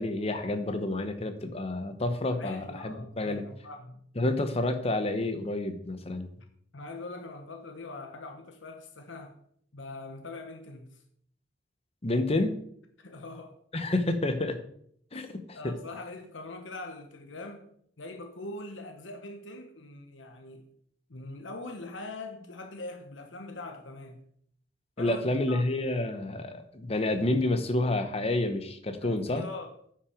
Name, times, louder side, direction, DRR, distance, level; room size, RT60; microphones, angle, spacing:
voice 1, 0.0-3.4 4.2-6.3 12.0-12.6 13.7-14.6 15.1-15.7 25.0-29.4, left 2 dB, 35° left, 8 dB, 1.0 m, -29 dB
voice 2, 2.4-4.0 6.7-9.4 9.7-11.0 13.0-13.6 15.1-17.7 18.0-20.7 21.1-24.2 25.0-25.6 29.0-29.7, left 2 dB, 90° left, 5 dB, 1.1 m, -42 dB
9.7 x 6.0 x 5.0 m, 0.65 s
head